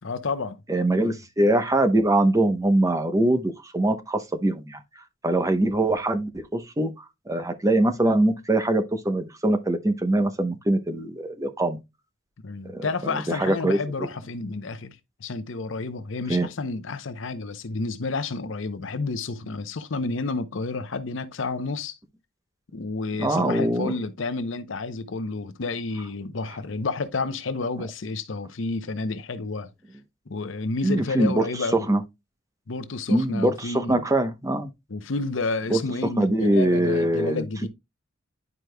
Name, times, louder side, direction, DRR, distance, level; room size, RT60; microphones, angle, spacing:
voice 1, 0.0-0.6 1.0-1.1 12.4-22.0 22.7-29.7 30.3-31.9 32.7-34.0 34.9-37.7, left 3 dB, 65° left, 0.7 m, -30 dB
voice 2, 0.7-4.8 5.2-11.8 12.7-13.8 16.3-16.5 23.2-23.9 30.8-31.5 31.9-32.0 33.1-34.7 35.7-35.8 36.2-37.4, right 1 dB, 15° right, 0.8 m, -23 dB
10.5 x 4.8 x 2.2 m
head